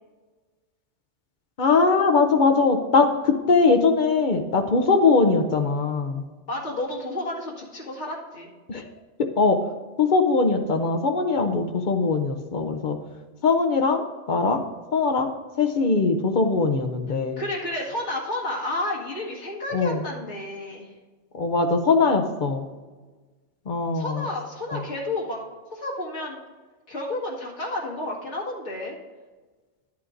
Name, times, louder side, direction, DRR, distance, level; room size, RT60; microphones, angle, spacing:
voice 1, 1.6-6.2 8.7-8.8 9.4-9.6 10.0-13.0 13.4-14.6 14.9-15.3 15.6-17.4 19.7-20.0 21.3-22.7 23.7-24.3 24.7-24.8, left 4 dB, 50° left, 6 dB, 0.7 m, -21 dB
voice 2, 6.5-8.5 17.4-20.9 23.9-25.4 25.7-26.4 26.9-29.0, left 1 dB, 80° left, -5 dB, 2.2 m, -31 dB
12.5 x 8.7 x 2.5 m, 1.3 s
omnidirectional pair, 1.2 m